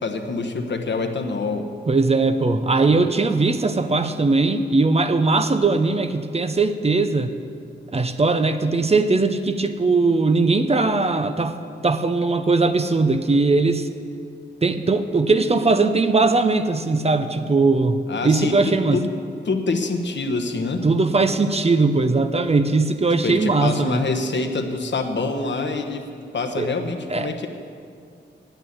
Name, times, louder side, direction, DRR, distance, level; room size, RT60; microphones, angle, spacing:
voice 1, 0.0-1.7 18.1-19.1 19.4-20.8 23.2-26.0 26.3-27.5, left 3 dB, 70° left, 5 dB, 1.2 m, -25 dB
voice 2, 1.9-7.3 7.9-11.6 11.8-13.9 14.6-19.0 20.8-24.0 26.6-26.7 27.1-27.3, right 3 dB, 35° right, 9 dB, 0.7 m, -20 dB
9.1 x 9.0 x 9.6 m, 2.3 s
wide cardioid pair, 90°, 19 cm